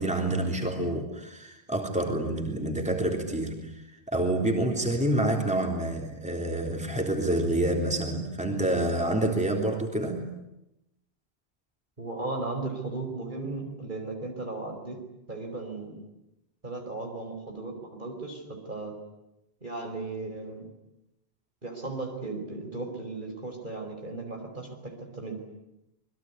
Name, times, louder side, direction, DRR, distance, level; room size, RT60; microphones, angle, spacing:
voice 1, 0.0-10.2, right 1 dB, 5° right, 2 dB, 3.6 m, -28 dB
voice 2, 12.0-15.0 15.3-16.0 16.6-19.0 19.6-20.7 21.6-25.4, right 3 dB, 50° right, 3 dB, 5.2 m, -36 dB
28.0 x 21.5 x 9.8 m, 0.90 s
omnidirectional pair, 1.0 m